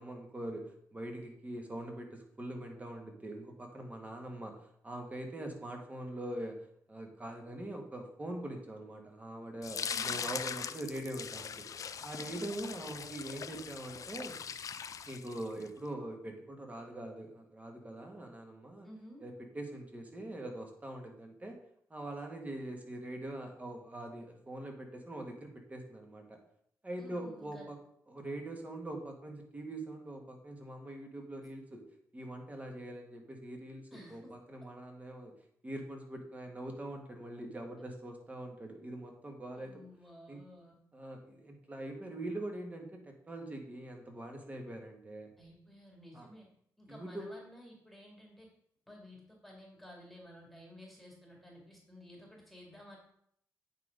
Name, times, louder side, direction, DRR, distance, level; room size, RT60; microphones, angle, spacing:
voice 1, 0.0-6.6 6.9-11.7 12.0-14.4 15.1-18.9 19.2-21.6 21.9-26.4 26.8-27.8 28.1-31.8 32.1-35.3 35.6-39.7 40.3-40.4 40.9-45.3 46.1-46.3 46.9-47.3, right 1 dB, 20° right, 2 dB, 1.7 m, -43 dB
sound 1, 9.6-15.7, left 7 dB, 55° left, 0.4 m, -41 dB
voice 2, 9.8-10.3 12.2-12.7 18.8-19.2 27.0-27.7 33.9-34.3 39.5-40.7 45.4-46.5 46.8-48.5 48.9-53.0, equal, ahead, -2 dB, 2.2 m, -53 dB
9.0 x 3.9 x 5.1 m, 0.70 s
cardioid pair, 95°, 7 cm